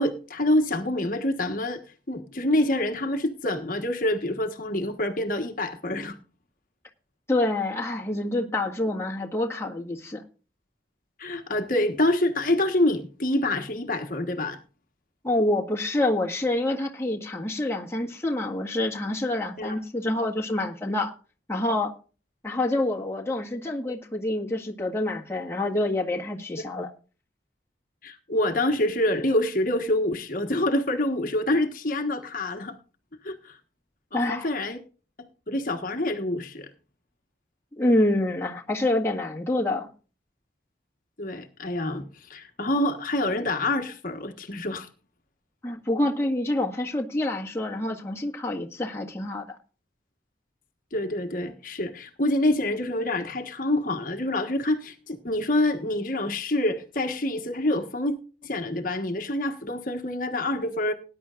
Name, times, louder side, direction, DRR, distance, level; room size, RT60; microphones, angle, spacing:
voice 1, 0.0-1.8 2.1-6.2 11.2-14.6 19.6-19.8 28.0-32.7 33.2-33.6 34.1-34.8 35.5-36.7 41.2-44.9 50.9-58.1 58.4-60.9, left 1 dB, 50° left, 5 dB, 1.4 m, -26 dB
voice 2, 7.3-10.2 15.2-21.1 21.5-21.9 22.4-26.9 34.1-34.5 37.8-39.9 45.6-49.6, left 1 dB, 15° left, -1 dB, 1.8 m, -27 dB
19.0 x 10.5 x 2.5 m, 0.36 s
head